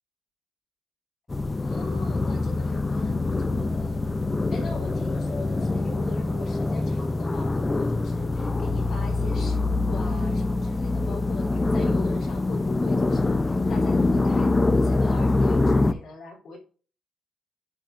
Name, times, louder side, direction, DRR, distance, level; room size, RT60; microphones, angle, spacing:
sound 1, 1.3-15.9, left 2 dB, 20° left, 0.6 m, -24 dB
voice 1, 1.6-4.0 4.5-16.6, left 4 dB, 65° left, -3 dB, 3.2 m, -41 dB
10.5 x 4.7 x 2.6 m, 0.38 s
cardioid pair, 90°, 0 cm